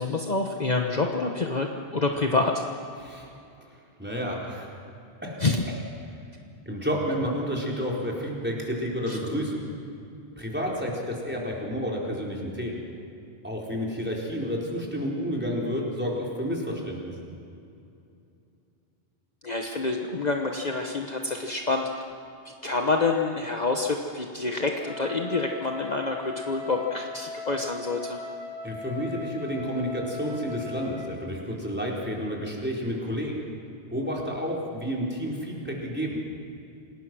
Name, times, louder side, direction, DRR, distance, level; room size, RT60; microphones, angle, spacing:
voice 1, 0.0-2.6 5.4-5.6 9.1-9.2 19.4-21.9 22.6-28.2, left 3 dB, 40° left, 2 dB, 1.3 m, -27 dB
voice 2, 4.0-4.7 5.2-5.4 6.7-9.6 10.4-12.8 13.4-17.1 28.6-33.3 33.9-36.2, equal, 10° right, -3 dB, 4.3 m, -30 dB
Wind instrument woodwind instrument, 24.8-31.2, left 3 dB, 30° right, 3.5 m, -38 dB
28.0 x 19.0 x 6.2 m, 2.6 s
omnidirectional pair, 1.1 m